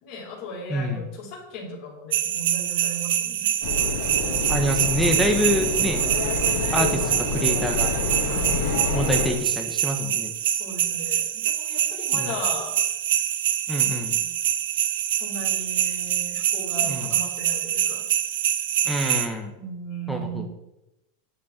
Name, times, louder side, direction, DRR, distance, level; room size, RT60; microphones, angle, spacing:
voice 1, 0.0-3.5 6.7-7.0 8.2-8.6 10.4-12.8 13.8-14.3 15.1-18.1 19.6-20.5, right 1 dB, 40° left, -4 dB, 4.8 m, -37 dB
voice 2, 0.7-1.1 4.5-6.0 6.4-7.0 7.3-7.9 8.9-10.3 12.1-12.4 13.7-14.1 16.9-17.1 18.8-19.5 20.1-20.4, left 1 dB, ahead, 2 dB, 1.5 m, -26 dB
sound 1, 2.1-19.3, right 11 dB, 80° right, 0.9 m, -25 dB
sound 2, 3.6-9.3, left 4 dB, 75° left, 3.3 m, -28 dB
11.0 x 10.5 x 4.5 m, 0.91 s
supercardioid pair, 165°, 0 cm